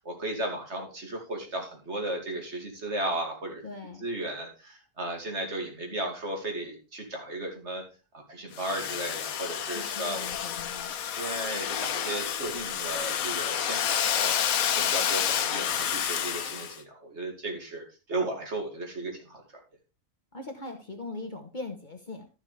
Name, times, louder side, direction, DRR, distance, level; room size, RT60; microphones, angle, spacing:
voice 1, 0.0-3.6 4.0-7.8 8.1-10.3 11.1-19.4, right 1 dB, 55° right, 2 dB, 2.6 m, -35 dB
voice 2, 3.6-4.0 9.7-11.0 20.3-22.3, left 3 dB, 35° left, 4 dB, 1.2 m, -40 dB
Domestic sounds home sounds, 8.5-16.8, left 9 dB, 85° left, 1.2 m, -29 dB
12.0 x 7.2 x 3.3 m, 0.32 s
omnidirectional pair, 1.4 m